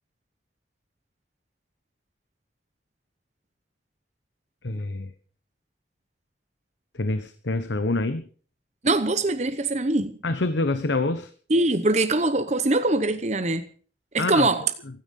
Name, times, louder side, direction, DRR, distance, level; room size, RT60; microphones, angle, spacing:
voice 1, 4.6-5.1 6.9-8.3 10.2-11.3 14.2-14.5, left 2 dB, 85° left, 1.0 m, -26 dB
voice 2, 8.8-10.2 11.5-13.7 14.1-14.6, right 2 dB, 40° right, 0.9 m, -23 dB
16.0 x 13.0 x 5.4 m
head